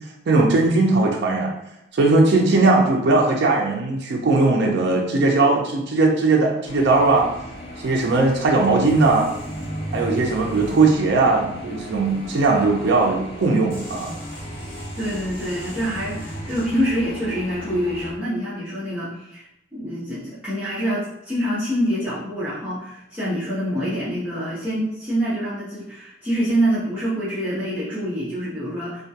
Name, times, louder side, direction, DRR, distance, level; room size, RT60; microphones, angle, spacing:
voice 1, 0.3-1.5 1.9-7.3 7.8-9.3 9.9-14.1, right 3 dB, 65° right, 0 dB, 0.4 m, -19 dB
sound 1, 6.6-18.1, left 1 dB, 30° left, 0.5 m, -38 dB
sound 2, 8.8-11.7 13.7-17.1, right 1 dB, 45° left, 1.1 m, -35 dB
voice 2, 15.0-19.5 19.7-29.0, equal, 5° right, -12 dB, 0.6 m, -26 dB
2.2 x 2.2 x 2.7 m, 0.84 s
head